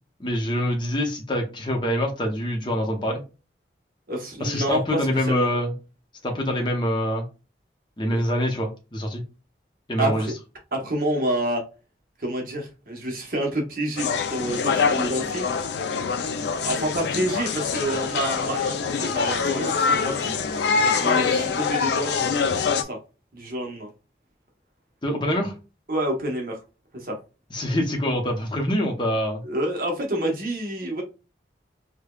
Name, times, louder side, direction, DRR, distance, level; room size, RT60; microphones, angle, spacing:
voice 1, 0.2-3.2 4.4-5.7 6.2-7.2 8.0-9.2 9.9-10.3 25.0-25.5 27.5-29.4, equal, 25° left, 0.7 m, -25 dB
voice 2, 4.1-5.5 10.0-10.3 10.7-11.6 12.2-15.5 15.9-16.0 16.6-20.3 20.9-23.0 23.3-23.9 25.9-26.6 26.9-27.2 29.4-31.0, right 1 dB, 50° right, 0.9 m, -28 dB
sound 1, 14.0-22.8, left 5 dB, 70° left, 0.4 m, -24 dB
5.0 x 2.2 x 2.3 m
head